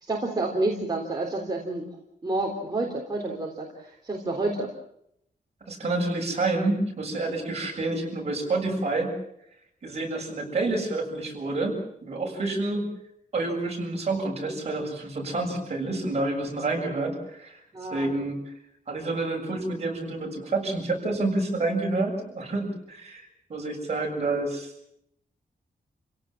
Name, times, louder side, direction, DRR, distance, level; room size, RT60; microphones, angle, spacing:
voice 1, 0.0-1.9 2.2-4.7 14.4-14.6 17.7-18.1, right 2 dB, 25° right, -1 dB, 3.7 m, -29 dB
voice 2, 5.7-9.1 9.8-12.9 13.3-17.6 17.9-18.4 18.9-24.7, right 2 dB, 40° right, 0 dB, 7.5 m, -28 dB
29.5 x 17.5 x 7.4 m, 0.75 s
wide cardioid pair, 175°, 17 cm